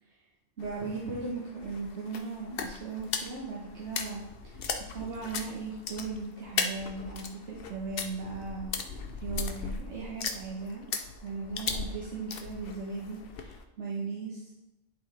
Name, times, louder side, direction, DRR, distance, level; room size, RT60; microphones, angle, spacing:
sound 1, 0.6-13.6, left 5 dB, 60° left, 0.8 m, -38 dB
voice 1, 0.6-4.6 4.9-10.9 11.2-14.5, right 4 dB, 80° right, -4 dB, 1.5 m, -38 dB
11.0 x 4.4 x 3.3 m, 0.90 s
omnidirectional pair, 1.2 m